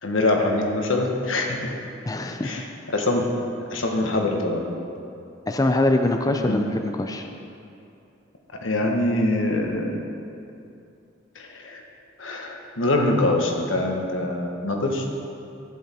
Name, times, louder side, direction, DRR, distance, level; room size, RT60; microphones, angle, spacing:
voice 1, 0.0-1.6 2.4-2.6 2.9-3.3 3.7-4.7 6.5-6.6 8.6-10.0 11.3-11.8 12.2-15.0, left 2 dB, 85° left, 2 dB, 1.2 m, -24 dB
voice 2, 2.0-2.5 5.5-7.3, left 2 dB, 20° left, 5 dB, 0.4 m, -23 dB
11.5 x 8.3 x 4.3 m, 2.7 s
head